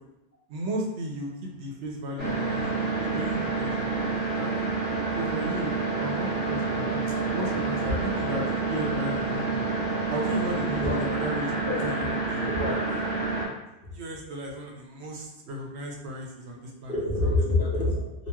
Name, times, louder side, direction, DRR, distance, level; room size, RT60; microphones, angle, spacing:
voice 1, 0.5-4.5 5.1-9.6 10.1-11.5 11.8-12.8 13.9-16.9 17.2-17.3, right 1 dB, 80° right, 0 dB, 0.9 m, -35 dB
sound 1, 2.2-13.5, right 3 dB, 10° right, 0.6 m, -28 dB
voice 2, 12.4-12.7 16.9-18.3, left 2 dB, 60° left, -6 dB, 1.1 m, -26 dB
2.9 x 2.7 x 2.2 m, 0.93 s
omnidirectional pair, 1.1 m